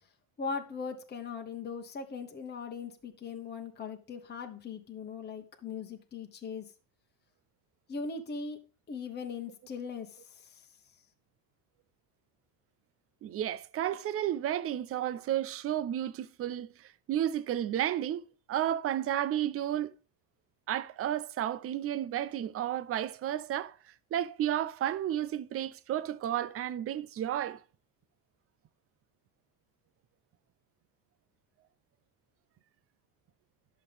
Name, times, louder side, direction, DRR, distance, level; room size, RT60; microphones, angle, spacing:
voice 1, 0.4-6.7 7.9-8.6 8.9-10.6, left 5 dB, 20° left, 1.2 m, -39 dB
voice 2, 13.2-19.9 20.7-23.7 24.1-27.6, right 11 dB, 30° right, 0.6 m, -32 dB
11.0 x 6.6 x 3.4 m
cardioid pair, 125°, 45 cm